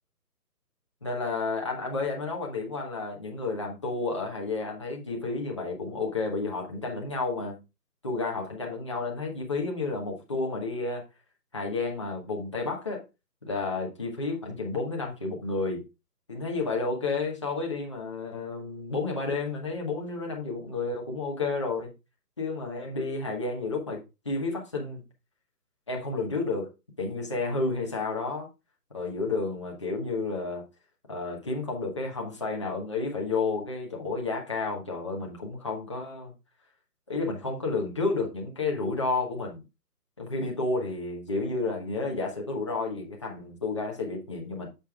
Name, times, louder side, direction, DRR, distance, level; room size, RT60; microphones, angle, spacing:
voice 1, 1.0-7.6 8.0-11.0 11.5-13.0 13.4-15.8 16.3-21.9 22.4-25.0 25.9-26.7 27.0-28.5 28.9-30.6 31.1-36.3 37.1-39.6 40.2-44.7, left 3 dB, 20° left, 1.0 m, -31 dB
9.1 x 6.9 x 2.4 m
hypercardioid pair, 170°, 49 cm